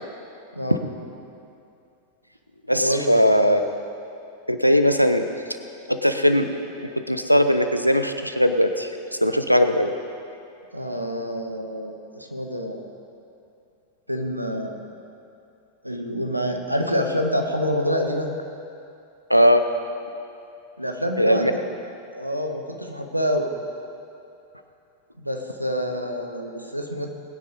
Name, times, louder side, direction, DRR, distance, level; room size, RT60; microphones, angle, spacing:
voice 1, 2.7-3.6 4.5-5.2 5.9-6.5 6.8-8.9 9.2-9.9 19.3-19.6 21.2-21.5, equal, 90° left, 7 dB, 0.7 m, -19 dB
voice 2, 10.7-12.8 14.1-14.8 15.8-18.3 20.8-21.5 22.1-23.5 25.2-27.1, equal, 90° right, 4 dB, 1.2 m, -27 dB
20.5 x 10.0 x 4.0 m, 2.6 s
figure-of-eight pair, 90°, 0 cm